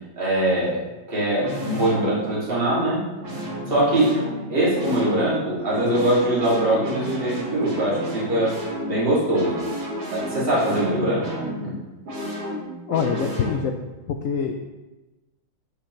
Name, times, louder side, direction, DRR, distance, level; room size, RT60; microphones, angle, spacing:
voice 1, 0.2-0.8 1.1-3.1 3.7-4.2 4.5-8.5 8.9-9.6 10.1-11.3 11.6-11.8, right 1 dB, 30° right, -8 dB, 2.6 m, -22 dB
sound 1, 0.5-0.8 1.4-2.6 3.2-13.5, equal, 90° right, 3.0 m, -32 dB
voice 2, 12.9-13.7 14.1-14.5, left 6 dB, 75° left, 4 dB, 0.7 m, -24 dB
13.5 x 5.1 x 3.1 m, 1.1 s
omnidirectional pair, 2.0 m